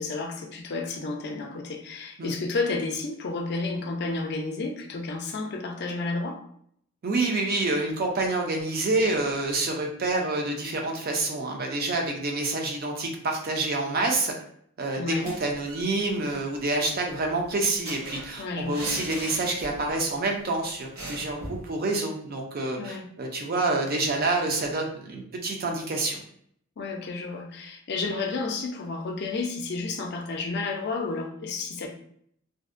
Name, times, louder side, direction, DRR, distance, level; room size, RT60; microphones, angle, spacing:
voice 1, 0.0-6.4 15.0-15.3 18.4-18.8 22.8-23.1 26.8-31.9, left 3 dB, 55° left, 3 dB, 0.4 m, -31 dB
voice 2, 7.0-14.3 14.8-26.2, right 2 dB, 45° right, 1 dB, 0.4 m, -27 dB
sound 1, 15.2-15.9 16.2-16.3 16.6-20.0 20.3-20.4 21.0-21.7, right 1 dB, 90° right, 0.8 m, -40 dB
2.5 x 2.1 x 2.5 m, 0.67 s
head